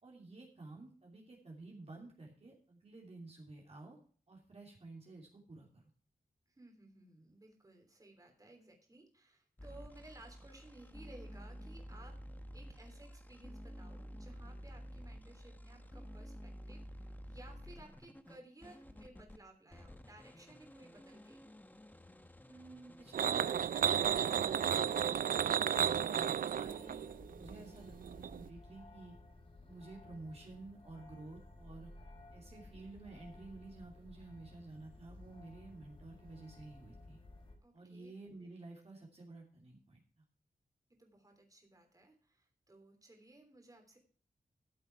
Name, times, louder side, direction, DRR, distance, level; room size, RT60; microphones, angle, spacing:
voice 1, 0.0-4.0 4.3-5.9 22.5-25.0 25.6-29.2 29.6-31.9 32.3-37.2 37.7-40.2, right 2 dB, 45° right, -1 dB, 2.9 m, -52 dB
voice 2, 6.5-12.1 12.5-21.5 37.6-38.1 41.0-44.0, right 2 dB, 25° right, 3 dB, 3.4 m, -58 dB
sound 1, 9.6-19.4 19.7-24.8, equal, 10° left, 1.0 m, -51 dB
sound 2, 23.1-28.5, right 8 dB, 65° right, 0.4 m, -33 dB
sound 3, 26.7-37.6, left 2 dB, 40° left, 4.5 m, -56 dB
14.0 x 7.8 x 4.6 m, 0.43 s
wide cardioid pair, 115°, 15 cm